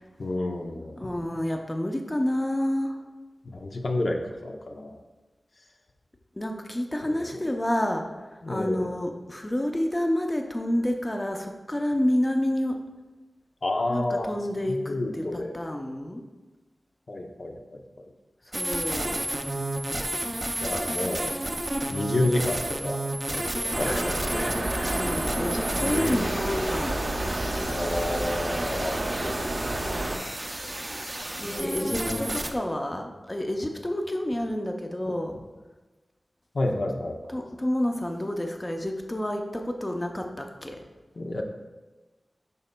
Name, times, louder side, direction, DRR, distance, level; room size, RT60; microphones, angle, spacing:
voice 1, 0.2-1.1 3.4-5.0 7.1-7.4 8.4-8.9 13.6-14.3 14.7-15.6 17.1-18.1 20.6-21.3 21.9-24.9 25.8-26.3 27.7-29.5 30.0-30.2 31.4-32.4 35.1-35.2 36.5-37.3 41.2-41.4, left 2 dB, 70° left, 2 dB, 0.6 m, -31 dB
voice 2, 1.0-3.0 6.4-12.8 13.9-16.2 18.5-19.3 24.9-27.0 31.4-35.4 37.3-40.9, left 1 dB, 25° left, 3 dB, 0.6 m, -29 dB
sound 1, 18.5-32.5, right 1 dB, 30° right, 0.5 m, -32 dB
sound 2, 23.7-30.2, right 1 dB, 60° right, 0.8 m, -30 dB
10.5 x 4.0 x 2.2 m, 1.2 s
wide cardioid pair, 65°, 0 cm